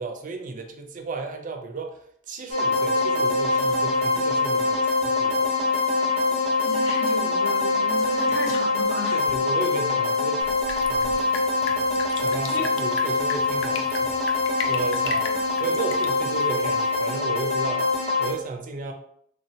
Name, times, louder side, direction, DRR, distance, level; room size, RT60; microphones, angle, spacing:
voice 1, 0.0-5.5 8.2-8.5 9.1-10.5 10.9-11.2 12.1-18.9, right 3 dB, 40° right, 4 dB, 0.4 m, -34 dB
sound 1, 2.5-18.3, left 3 dB, 35° left, 0.8 m, -24 dB
voice 2, 6.6-9.3 12.5-12.6, left 1 dB, 80° left, 0 dB, 0.7 m, -33 dB
Drip, 10.4-17.0, left 6 dB, 65° left, 0.4 m, -37 dB
3.2 x 2.1 x 2.7 m, 0.66 s
head